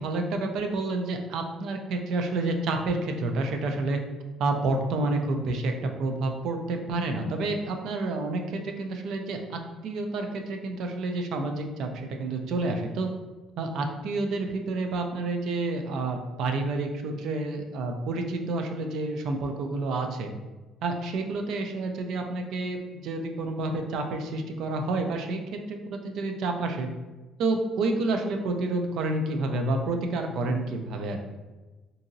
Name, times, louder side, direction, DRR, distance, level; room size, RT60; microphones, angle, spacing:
voice 1, 0.0-4.0 4.4-13.1 13.6-20.3 20.8-26.9 27.4-31.2, right 2 dB, 55° right, 4 dB, 0.3 m, -29 dB
2.8 x 2.6 x 2.6 m, 1.2 s
cardioid pair, 180°, 0 cm